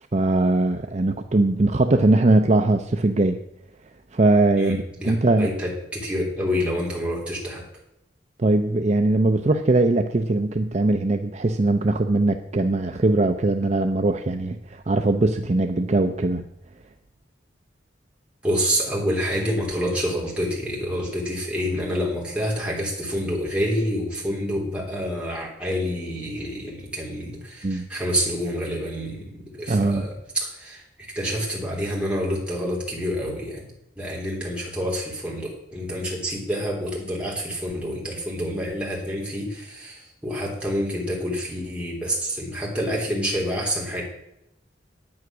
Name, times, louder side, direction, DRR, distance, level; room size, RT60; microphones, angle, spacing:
voice 1, 0.1-3.4 4.1-4.8 5.0-5.5 8.4-16.4 27.6-27.9 29.7-30.1, right 2 dB, 40° right, 7 dB, 0.6 m, -20 dB
voice 2, 4.6-7.6 18.4-30.8 31.1-33.7 34.0-44.0, equal, 5° right, -4 dB, 3.4 m, -27 dB
9.7 x 9.3 x 6.1 m, 0.83 s
head